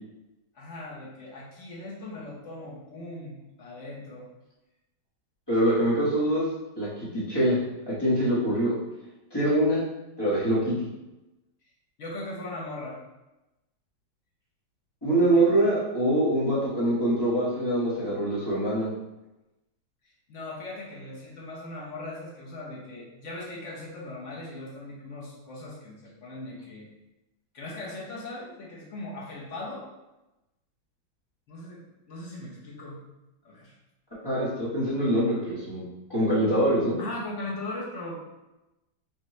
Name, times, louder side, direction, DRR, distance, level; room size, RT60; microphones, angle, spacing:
voice 1, 0.5-4.3 12.0-13.0 15.3-15.4 20.0-26.9 27.5-29.9 31.5-31.8 32.1-33.0 33.4-33.7 37.0-38.2, left 2 dB, 50° left, -5 dB, 0.9 m, -39 dB
voice 2, 5.5-6.5 6.8-7.6 7.9-8.7 9.3-9.9 10.2-10.7 15.0-18.9 34.2-35.8 36.1-37.0, right 1 dB, 15° left, -9 dB, 0.9 m, -24 dB
5.2 x 2.3 x 3.1 m, 0.99 s
omnidirectional pair, 2.1 m